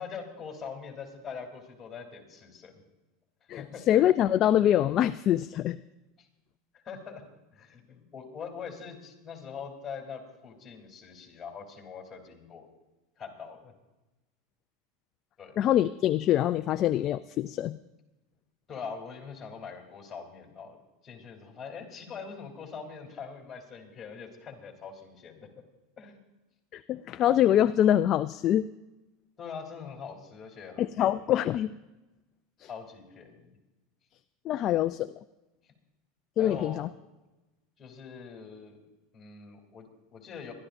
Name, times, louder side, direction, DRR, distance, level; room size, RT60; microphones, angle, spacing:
voice 1, 0.0-2.8 3.5-3.8 6.2-6.3 6.7-7.2 7.5-12.7 13.2-13.7 15.4-15.6 18.7-20.8 21.0-25.5 26.0-26.2 29.4-31.1 32.6-33.6 36.4-36.8 37.8-38.8 39.1-40.5, left 6 dB, 20° left, 2 dB, 3.2 m, -43 dB
voice 2, 3.5-5.8 15.6-17.8 26.7-28.7 30.8-31.7 32.6-32.7 34.5-35.1 36.4-36.9, left 11 dB, 40° left, 11 dB, 0.3 m, -24 dB
23.5 x 12.5 x 2.6 m, 1.0 s
supercardioid pair, 140°, 0 cm